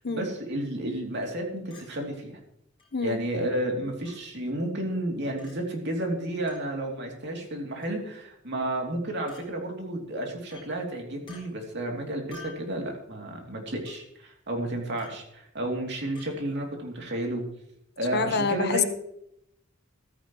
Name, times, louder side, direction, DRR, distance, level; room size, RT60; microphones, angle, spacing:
voice 1, 0.1-2.4 3.0-17.4 18.0-18.9, right 1 dB, 55° right, 1 dB, 3.0 m, -31 dB
Chink clink, 1.7-1.9 2.8-2.9 4.0-4.2 5.4-5.5 6.5-6.6 7.8-8.0 9.3-9.4 10.5-10.7 11.3-11.4 12.3-12.7 13.9-14.0 15.0-15.2 16.2-16.3, left 4 dB, 25° left, 4.6 m, -49 dB
voice 2, 18.1-18.8, left 4 dB, 55° left, 9 dB, 1.0 m, -26 dB
15.0 x 14.0 x 3.2 m, 0.76 s
head